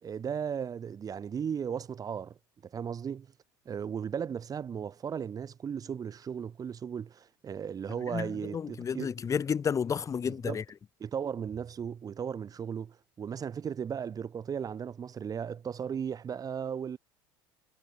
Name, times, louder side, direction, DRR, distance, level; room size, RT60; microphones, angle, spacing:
voice 1, 0.0-2.4 2.6-3.3 3.6-9.1 10.3-10.6 11.0-17.0, right 7 dB, 35° right, 2.9 m, -36 dB
voice 2, 8.1-10.6, left 7 dB, 30° left, 1.2 m, -31 dB
hypercardioid pair, 80°, 11 cm